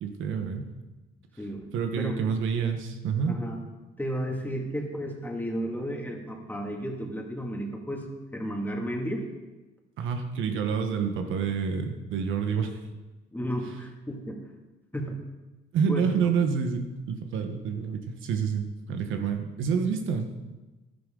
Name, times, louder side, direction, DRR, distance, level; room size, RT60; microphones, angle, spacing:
voice 1, 0.0-0.6 1.7-3.3 10.0-12.8 15.7-20.4, right 6 dB, 85° right, 5 dB, 1.2 m, -28 dB
voice 2, 3.3-3.6 4.0-9.3 13.3-14.5 14.9-15.2 15.9-16.1, equal, 10° left, 0 dB, 2.3 m, -33 dB
11.5 x 11.5 x 3.9 m, 1.1 s
cardioid pair, 90°, 20 cm